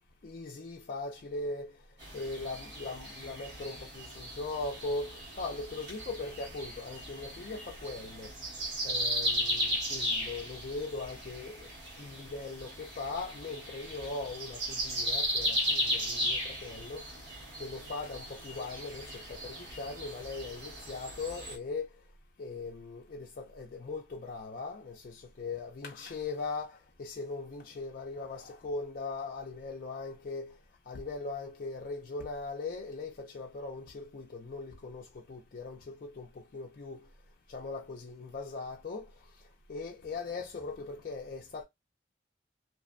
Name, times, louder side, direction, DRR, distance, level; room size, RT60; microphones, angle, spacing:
voice 1, 0.2-1.7 2.1-8.3 8.8-11.7 12.0-17.0 17.6-21.9 22.4-30.6 30.9-37.1 37.5-39.1 39.7-41.6, left 3 dB, 50° left, 0.4 m, -40 dB
sound 1, 2.0-21.6, equal, 65° right, 1.2 m, -36 dB
2.5 x 2.1 x 2.5 m
head